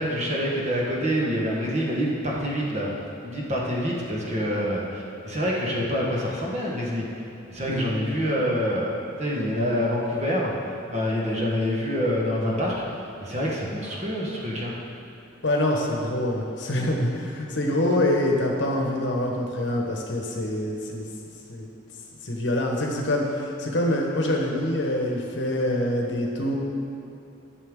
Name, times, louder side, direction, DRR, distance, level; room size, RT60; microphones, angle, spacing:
voice 1, 0.0-2.9 3.2-7.0 7.5-8.9 9.2-14.7, equal, 35° right, -3 dB, 1.3 m, -26 dB
voice 2, 15.4-21.1 21.5-21.7 22.2-26.6, left 1 dB, 60° left, 0 dB, 1.1 m, -25 dB
11.0 x 6.6 x 3.7 m, 2.8 s
head